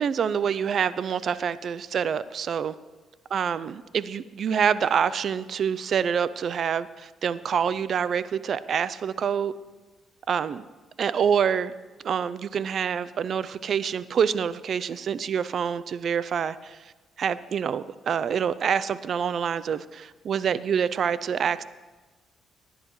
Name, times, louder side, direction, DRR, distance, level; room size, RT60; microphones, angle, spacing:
voice 1, 0.0-2.7 3.3-9.5 10.3-10.6 11.0-11.7 12.0-16.8 17.2-21.6, right 7 dB, 55° right, 16 dB, 0.4 m, -26 dB
18.0 x 10.0 x 3.1 m, 1.3 s
cardioid pair, 90°, 0 cm